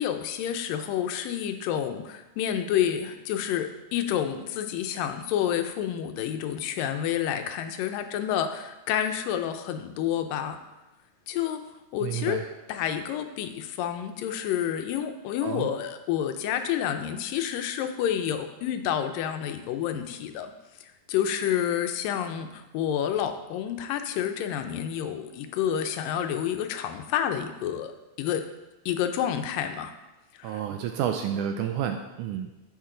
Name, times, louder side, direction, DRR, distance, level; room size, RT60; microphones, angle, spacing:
voice 1, 0.0-10.6 11.3-11.6 11.9-12.4 12.7-20.5 20.8-27.9 28.2-28.5 28.9-29.9 30.3-30.6, left 9 dB, 80° left, 7 dB, 2.4 m, -29 dB
voice 2, 12.0-12.4 15.4-15.7 30.4-32.5, right 9 dB, 80° right, 5 dB, 1.8 m, -30 dB
10.5 x 7.4 x 3.8 m, 1.0 s
omnidirectional pair, 3.9 m